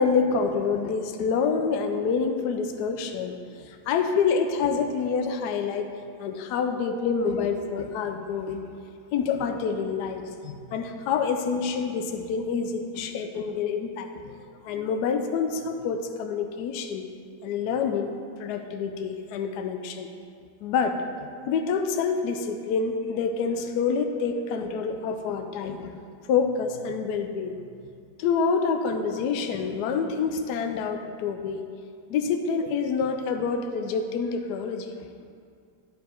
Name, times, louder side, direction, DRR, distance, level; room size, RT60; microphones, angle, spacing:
voice 1, 0.0-5.9 6.2-8.7 9.1-14.4 14.6-17.1 17.4-18.1 18.4-20.1 20.6-25.9 26.3-27.9 28.2-31.7 32.1-34.9, left 5 dB, 75° left, 6 dB, 0.9 m, -27 dB
10.0 x 5.1 x 4.4 m, 2.3 s
omnidirectional pair, 2.1 m